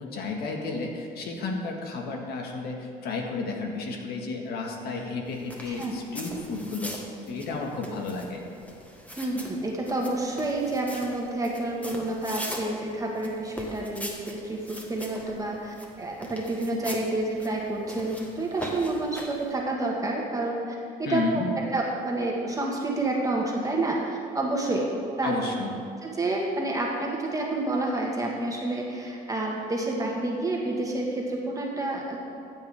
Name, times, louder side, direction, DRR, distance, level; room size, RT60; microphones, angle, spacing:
voice 1, 0.0-6.9 7.3-8.4 21.0-21.5 25.2-25.8, left 4 dB, 70° left, 1 dB, 1.7 m, -32 dB
sound 1, 5.3-19.5, equal, 10° left, 1.4 m, -41 dB
voice 2, 9.2-21.2 21.7-25.3 26.0-32.2, right 2 dB, 20° right, -2 dB, 1.5 m, -29 dB
14.5 x 8.1 x 3.5 m, 2.6 s
cardioid pair, 110°, 17 cm